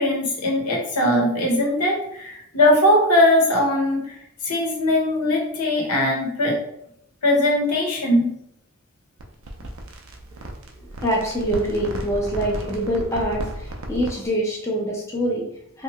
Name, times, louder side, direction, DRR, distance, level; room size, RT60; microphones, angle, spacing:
voice 1, 0.0-4.1 4.4-6.6 7.2-8.3, left 1 dB, 85° left, -1 dB, 0.8 m, -20 dB
sound 1, 9.2-14.3, right 1 dB, 60° right, 0.4 m, -34 dB
voice 2, 10.8-15.8, equal, 15° left, -3 dB, 0.5 m, -25 dB
2.8 x 2.2 x 2.9 m, 0.76 s
head